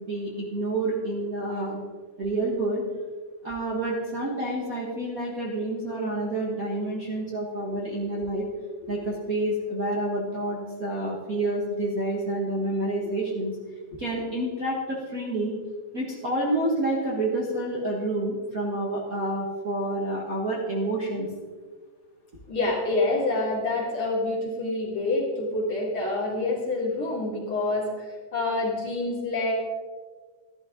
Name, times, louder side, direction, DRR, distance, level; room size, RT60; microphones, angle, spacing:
voice 1, 0.1-1.8 2.2-2.8 3.4-8.5 8.9-13.5 14.0-15.5 15.9-21.3, right 1 dB, 85° right, -5 dB, 0.7 m, -28 dB
voice 2, 22.5-29.5, left 2 dB, 40° left, -3 dB, 2.6 m, -27 dB
13.0 x 12.5 x 3.8 m, 1.5 s
omnidirectional pair, 4.4 m